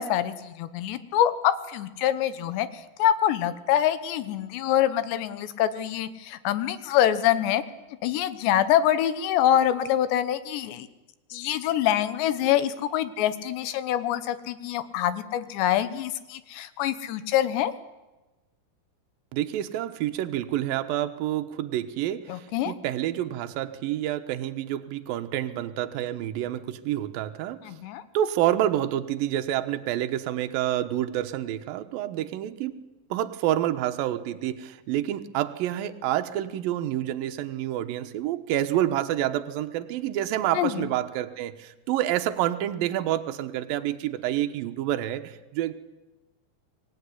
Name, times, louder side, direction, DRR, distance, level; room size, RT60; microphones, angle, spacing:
voice 1, 0.0-2.7 3.0-7.6 8.0-10.9 11.3-17.7 22.3-22.7 27.6-28.0 40.5-40.9, left 11 dB, 75° left, 13 dB, 3.2 m, -25 dB
voice 2, 19.3-27.8 28.1-32.7 33.1-45.7, right 12 dB, 70° right, 7 dB, 2.4 m, -28 dB
24.5 x 17.0 x 9.8 m, 1.1 s
omnidirectional pair, 5.2 m